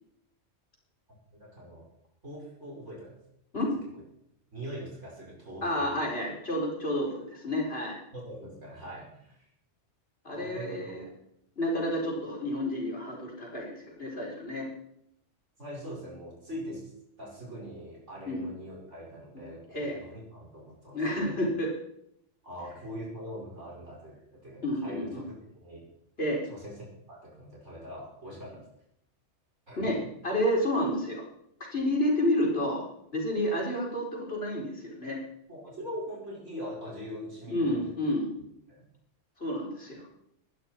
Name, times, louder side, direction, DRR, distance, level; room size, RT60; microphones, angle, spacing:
voice 1, 1.1-1.8 2.2-3.2 4.5-6.0 8.1-9.4 10.3-11.1 15.6-16.9 17.2-21.5 22.4-25.2 25.5-25.8 26.5-28.6 29.7-29.8 35.5-37.9 38.4-38.9, equal, 75° right, -4 dB, 6.1 m, -42 dB
voice 2, 5.6-8.0 10.2-11.1 11.6-14.7 18.3-18.4 19.7-20.0 20.9-21.7 24.6-25.2 26.2-26.4 29.8-30.0 30.2-31.2 31.6-32.9 33.1-35.2 37.5-38.3 39.4-40.1, left 1 dB, 55° left, -2 dB, 4.8 m, -30 dB
20.5 x 12.0 x 4.6 m, 0.74 s
omnidirectional pair, 1.2 m